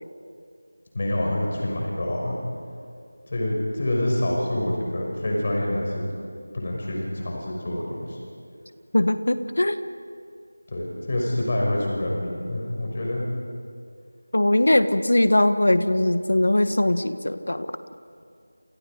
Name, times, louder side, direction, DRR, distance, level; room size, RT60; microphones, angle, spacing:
voice 1, 0.9-2.4 3.3-6.0 6.5-8.2 10.7-13.3, left 1 dB, 40° left, -1 dB, 5.8 m, -26 dB
voice 2, 8.9-9.8 14.3-17.7, left 1 dB, 70° left, 10 dB, 1.6 m, -20 dB
30.0 x 28.0 x 5.1 m, 2.3 s
figure-of-eight pair, 170°, 0 cm